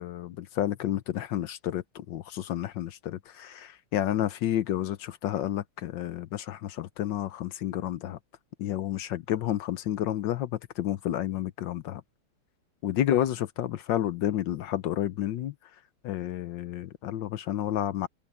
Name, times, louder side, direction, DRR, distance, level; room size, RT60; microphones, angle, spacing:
voice 1, 0.0-8.2 8.6-12.0 12.8-15.5 16.0-18.1, left 12 dB, 70° left, 1.2 m, -30 dB
open air
omnidirectional pair, 2.4 m